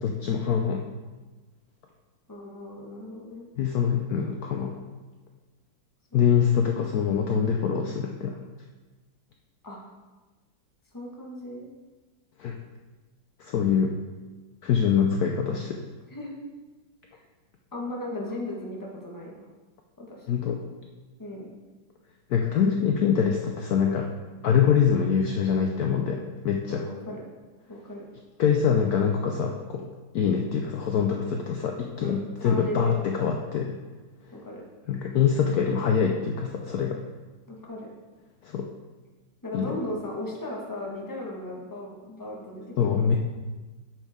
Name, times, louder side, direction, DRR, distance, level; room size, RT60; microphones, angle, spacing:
voice 1, 0.0-0.8 3.6-4.8 6.1-8.4 12.4-12.6 13.4-13.9 14.6-15.8 20.3-20.6 22.3-24.1 24.4-26.8 28.4-29.9 30.1-33.8 34.9-37.0 38.4-38.7 39.5-39.8 42.8-43.2, left 7 dB, 65° left, 2 dB, 1.0 m, -24 dB
voice 2, 2.3-3.5 6.1-6.3 9.6-9.8 10.9-11.6 16.1-16.4 17.1-17.2 17.7-19.4 20.0-20.3 21.2-21.5 26.7-27.2 27.7-28.0 32.0-33.0 34.3-34.6 37.5-37.9 39.4-43.1, left 1 dB, 10° left, -2 dB, 1.2 m, -36 dB
8.9 x 7.3 x 3.5 m, 1.2 s
omnidirectional pair, 2.0 m